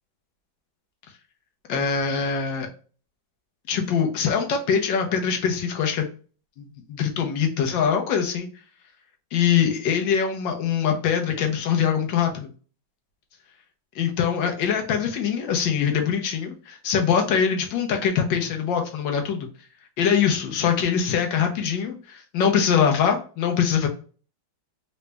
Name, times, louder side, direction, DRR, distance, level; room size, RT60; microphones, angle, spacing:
voice 1, 1.7-2.7 3.7-6.1 6.6-8.5 9.3-12.5 14.0-19.5 20.0-23.9, left 7 dB, 75° left, 3 dB, 1.4 m, -23 dB
3.9 x 2.2 x 3.3 m, 0.38 s
omnidirectional pair, 2.1 m